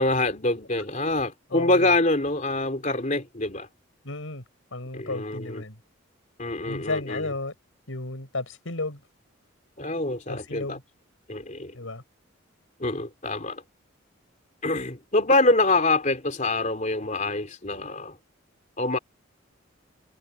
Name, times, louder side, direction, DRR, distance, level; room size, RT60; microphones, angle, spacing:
voice 1, 0.0-3.7 4.9-5.6 6.4-7.3 9.8-10.8 11.3-11.7 12.8-13.6 14.6-18.1 18.8-19.0, left 2 dB, 35° left, 3.4 m, -25 dB
voice 2, 1.5-1.9 4.0-4.4 4.7-5.8 6.7-7.5 7.9-9.0 10.3-10.8 11.7-12.0, left 2 dB, 80° left, 4.8 m, -33 dB
head